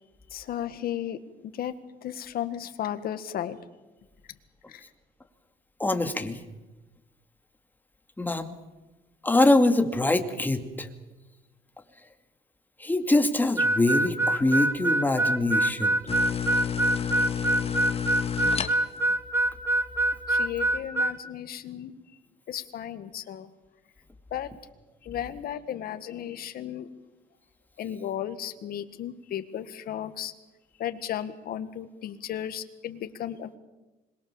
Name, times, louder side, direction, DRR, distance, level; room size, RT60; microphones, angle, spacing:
voice 1, 0.3-1.2 1.5-1.7 2.0-3.6 4.7-4.8 20.3-22.0 22.5-23.5 24.3-24.5 25.0-26.9 27.8-30.3 30.8-33.6, left 10 dB, 60° left, 10 dB, 1.9 m, -34 dB
voice 2, 5.8-6.4 8.2-8.5 9.2-10.9 12.8-16.0, left 2 dB, 10° left, 6 dB, 2.3 m, -24 dB
Harmonica, 13.6-21.2, right 1 dB, 15° right, 1.6 m, -24 dB
sound 1, 16.1-19.1, left 7 dB, 35° left, 1.9 m, -30 dB
26.0 x 22.0 x 7.3 m, 1.1 s
cardioid pair, 110°, 17 cm